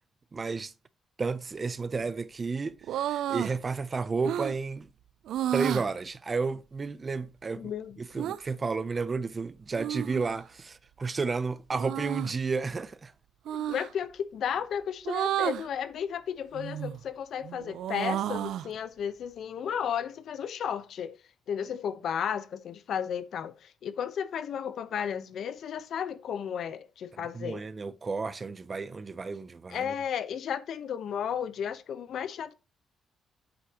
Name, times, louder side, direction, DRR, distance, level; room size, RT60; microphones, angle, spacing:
voice 1, 0.3-0.7 1.2-4.9 5.5-7.7 8.0-13.1 27.3-29.9, right 4 dB, 25° right, 0.5 m, -32 dB
sound 1, 2.8-3.6 4.2-4.6 5.3-5.9 8.2-8.4 9.8-10.4 11.7-12.3 13.5-13.9 15.1-15.7 16.5-17.0 17.4-18.7, right 12 dB, 80° right, 0.3 m, -31 dB
voice 2, 7.6-8.0 13.5-21.2 21.5-27.6 29.7-32.5, left 8 dB, 60° left, 0.9 m, -33 dB
8.1 x 8.0 x 2.9 m
cardioid pair, 140°, 0 cm